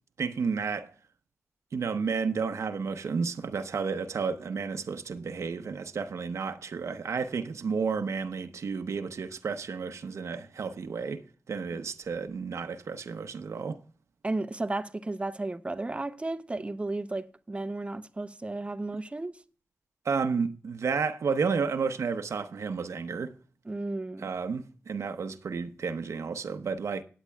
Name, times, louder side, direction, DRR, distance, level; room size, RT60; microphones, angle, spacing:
voice 1, 0.2-0.9 1.7-13.8 20.0-23.3 24.2-27.0, right 5 dB, 80° right, 0.8 m, -32 dB
voice 2, 14.2-19.4 23.7-24.3, right 2 dB, 25° right, 0.7 m, -33 dB
17.5 x 9.4 x 2.3 m
wide cardioid pair, 90°, 5 cm